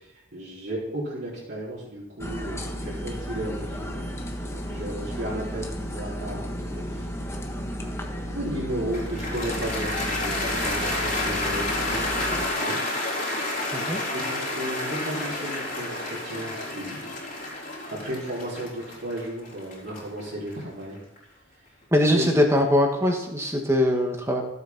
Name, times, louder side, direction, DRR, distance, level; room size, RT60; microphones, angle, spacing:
voice 1, 0.0-4.0 4.5-7.1 7.8-12.8 14.0-17.1 17.9-21.0 22.1-22.3, right 1 dB, 55° right, -8 dB, 4.3 m, -34 dB
sound 1, 2.2-12.5, equal, 15° left, 1.3 m, -33 dB
Cheering / Applause, 8.9-21.2, left 2 dB, 40° left, 4.0 m, -30 dB
voice 2, 21.9-24.4, left 1 dB, 15° right, 2 dB, 1.9 m, -22 dB
15.5 x 8.2 x 5.6 m, 0.86 s
head